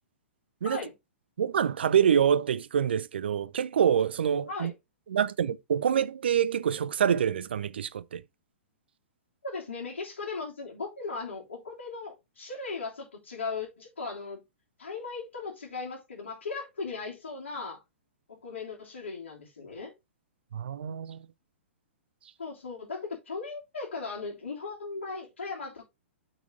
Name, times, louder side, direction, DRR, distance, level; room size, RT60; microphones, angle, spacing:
voice 1, 1.4-4.7 5.1-8.2 20.5-21.2, right 8 dB, 60° right, 0.6 m, -26 dB
voice 2, 9.4-14.4 14.8-17.8 18.3-19.9 22.4-25.8, left 4 dB, 65° left, 3.5 m, -37 dB
7.6 x 5.9 x 3.8 m
figure-of-eight pair, 115°, 7 cm